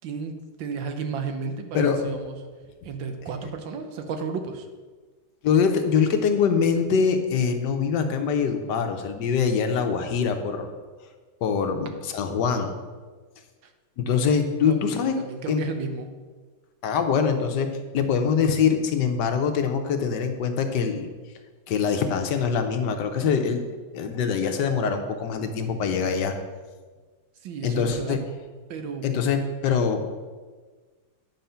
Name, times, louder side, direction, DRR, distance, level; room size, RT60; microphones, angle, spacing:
voice 1, 0.0-2.4 2.8-4.7 14.7-16.2 27.4-28.2 28.7-29.1, right 5 dB, 90° right, 7 dB, 1.6 m, -33 dB
voice 2, 1.7-2.1 5.4-10.7 11.4-12.7 14.0-15.2 15.5-15.6 16.8-21.1 21.7-23.7 23.9-26.3 27.6-28.2 29.0-30.1, left 6 dB, 70° left, 6 dB, 1.3 m, -24 dB
9.2 x 4.7 x 5.6 m, 1.4 s
omnidirectional pair, 2.0 m